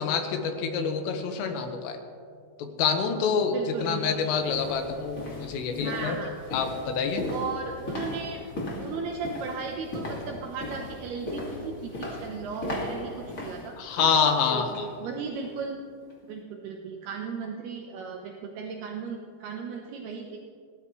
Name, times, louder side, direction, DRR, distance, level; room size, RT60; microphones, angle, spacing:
voice 1, 0.0-2.0 2.6-7.3 13.8-14.9, left 6 dB, 80° left, 5 dB, 3.9 m, -27 dB
sound 1, 3.0-3.1 3.7-15.0 15.3-15.6 16.0-16.1, left 1 dB, 50° left, 0.9 m, -37 dB
voice 2, 3.5-4.3 5.8-6.3 7.3-8.4 8.8-13.1 13.4-13.7 14.5-15.8 16.3-20.4, right 5 dB, 80° right, 1 dB, 2.3 m, -36 dB
30.0 x 13.5 x 3.2 m, 2.2 s
omnidirectional pair, 5.9 m